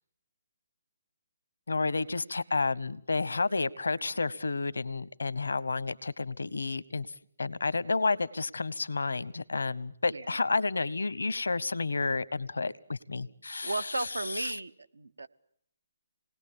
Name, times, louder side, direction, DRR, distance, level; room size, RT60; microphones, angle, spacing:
voice 1, 1.7-7.1 7.4-14.1 14.4-14.5, left 3 dB, 80° left, 17 dB, 1.0 m, -31 dB
voice 2, 13.6-15.3, right 2 dB, 85° right, 12 dB, 1.1 m, -35 dB
27.0 x 19.5 x 8.7 m, 0.71 s
figure-of-eight pair, 145°, 0 cm